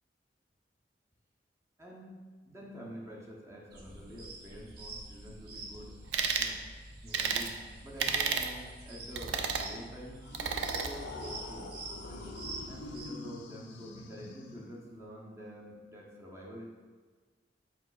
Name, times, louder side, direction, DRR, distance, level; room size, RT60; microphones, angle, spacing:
voice 1, 1.8-6.0 6.3-6.6 7.0-10.2 10.7-12.4 12.7-16.6, equal, 15° right, -3 dB, 0.5 m, -47 dB
sound 1, 3.7-13.0, right 2 dB, 60° right, 0.7 m, -46 dB
sound 2, 6.1-6.5 7.1-7.5 8.0-8.5 9.2-9.7 10.3-10.9, right 6 dB, 90° right, 0.4 m, -31 dB
sound 3, 10.2-15.0, left 2 dB, 85° left, 0.4 m, -45 dB
4.8 x 3.9 x 2.2 m, 1.4 s
head